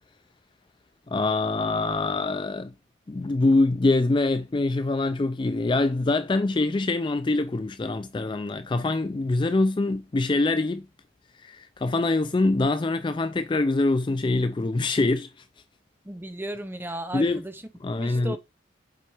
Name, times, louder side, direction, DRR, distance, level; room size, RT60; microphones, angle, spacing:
voice 1, 1.1-2.7 3.1-10.9 11.4-15.3 17.1-17.4 17.8-18.4, left 2 dB, 25° left, 0.3 m, -24 dB
voice 2, 16.1-17.5 18.0-18.4, right 1 dB, 10° right, 0.8 m, -34 dB
7.2 x 4.5 x 4.8 m
head